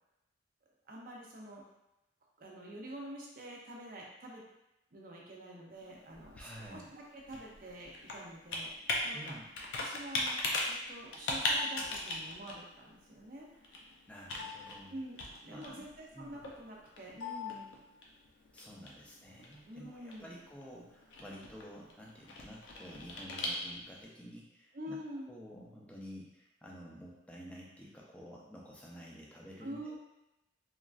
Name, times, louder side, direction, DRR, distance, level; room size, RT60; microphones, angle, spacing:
voice 1, 0.9-1.6 2.4-4.4 4.9-9.4 9.8-13.8 14.9-15.2 15.4-17.7 19.7-20.5 24.7-25.3 29.6-30.0, right 1 dB, 45° right, -2 dB, 0.5 m, -47 dB
Computer keyboard, 5.8-24.0, left 2 dB, 70° left, 0.5 m, -40 dB
voice 2, 6.4-6.9 9.1-9.5 14.1-14.9 15.5-15.8 16.1-16.4 18.5-25.0 25.3-30.0, equal, 5° left, -4 dB, 0.4 m, -50 dB
3.0 x 2.4 x 2.4 m, 0.92 s
head